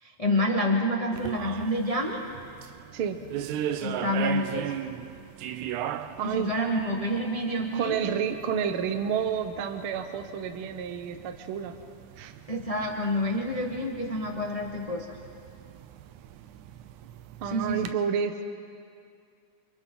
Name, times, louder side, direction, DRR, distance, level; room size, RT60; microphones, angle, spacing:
voice 1, 0.0-2.2 3.8-4.7 6.2-8.0 12.5-15.1 17.4-17.9, equal, 60° left, 1 dB, 0.3 m, -28 dB
sound 1, 1.1-17.9, right 10 dB, 90° right, 2.2 m, -39 dB
voice 2, 6.2-6.5 7.7-11.7 12.2-12.3 17.4-18.4, right 7 dB, 60° right, 7 dB, 1.6 m, -30 dB
28.5 x 28.0 x 3.9 m, 2.3 s
omnidirectional pair, 3.3 m